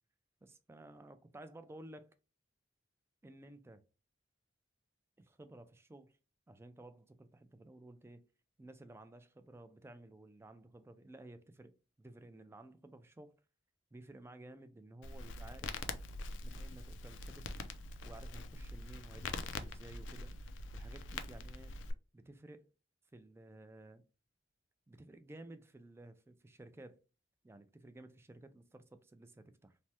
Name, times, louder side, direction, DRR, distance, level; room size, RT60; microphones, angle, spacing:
voice 1, 0.4-2.2 3.2-3.8 5.2-6.2 6.5-8.2 8.6-13.4 13.9-15.8 16.4-17.6 18.0-20.3 20.7-21.8 22.1-22.7 23.1-24.0 24.9-27.0 27.4-29.8, right 2 dB, 15° right, 0.3 m, -54 dB
Crackle, 15.0-21.9, left 3 dB, 75° left, 0.4 m, -44 dB
3.2 x 2.1 x 2.8 m
head